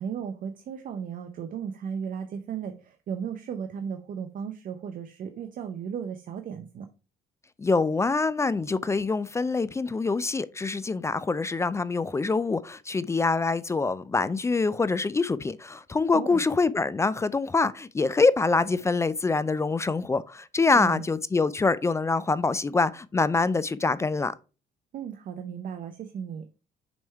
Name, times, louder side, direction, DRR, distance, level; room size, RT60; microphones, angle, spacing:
voice 1, 0.0-6.9 16.1-16.4 20.7-21.0 24.9-26.5, right 7 dB, 55° right, 0.7 m, -35 dB
voice 2, 7.6-24.3, left 3 dB, 15° left, 0.3 m, -25 dB
6.2 x 3.5 x 4.4 m
cardioid pair, 110°, 17 cm